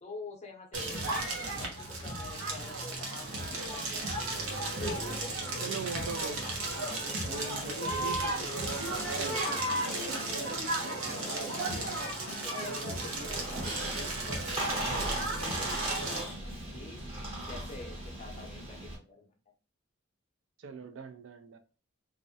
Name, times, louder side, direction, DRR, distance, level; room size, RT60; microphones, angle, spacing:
voice 1, 0.0-4.0 4.8-6.4 6.7-10.5 10.8-14.3 14.7-17.0 17.5-19.3, left 3 dB, 30° left, 0.6 m, -47 dB
Crackle, 0.7-16.2, right 2 dB, 80° right, 0.7 m, -34 dB
voice 2, 5.6-6.4 7.2-8.5 20.6-21.6, right 5 dB, 65° right, 0.3 m, -40 dB
Snare drum, 8.7-9.4 9.9-10.6 11.1-13.0, left 3 dB, 80° left, 0.6 m, -45 dB
Squeak, 13.2-19.0, right 1 dB, 30° right, 0.8 m, -37 dB
2.4 x 2.1 x 2.6 m
head